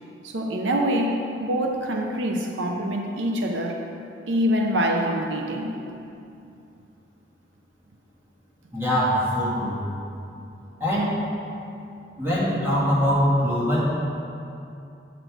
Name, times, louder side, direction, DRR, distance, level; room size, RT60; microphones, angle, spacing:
voice 1, 0.2-3.9 4.3-5.8, equal, 85° right, 2 dB, 0.7 m, -25 dB
voice 2, 8.7-9.8 10.8-11.1 12.2-13.9, equal, 10° right, -8 dB, 1.8 m, -22 dB
7.9 x 6.0 x 4.6 m, 2.7 s
head